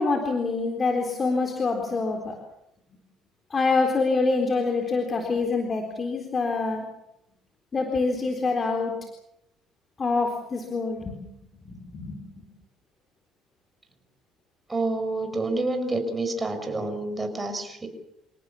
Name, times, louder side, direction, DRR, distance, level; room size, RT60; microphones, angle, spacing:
voice 1, 0.0-2.4 3.5-6.8 7.7-9.0 10.0-11.2 11.6-12.5, left 3 dB, 30° left, 3 dB, 4.0 m, -26 dB
voice 2, 14.7-17.9, right 2 dB, 20° right, 6 dB, 6.3 m, -28 dB
29.0 x 18.5 x 7.3 m, 0.83 s
cardioid pair, 100°, 0 cm